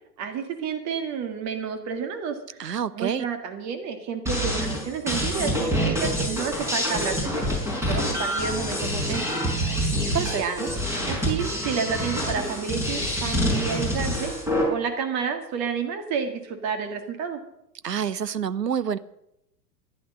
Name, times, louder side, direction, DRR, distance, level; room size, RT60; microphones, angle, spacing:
voice 1, 0.2-2.6 2.9-7.4 7.9-9.3 10.2-10.7 11.1-14.3 14.7-17.4, right 6 dB, 35° right, 6 dB, 2.0 m, -30 dB
voice 2, 2.6-3.2 10.1-10.7 17.8-19.0, right 8 dB, 85° right, 15 dB, 0.9 m, -28 dB
sound 1, 4.3-14.6, equal, 5° right, 5.4 m, -26 dB
14.5 x 11.0 x 6.4 m, 0.81 s
figure-of-eight pair, 100°, 48 cm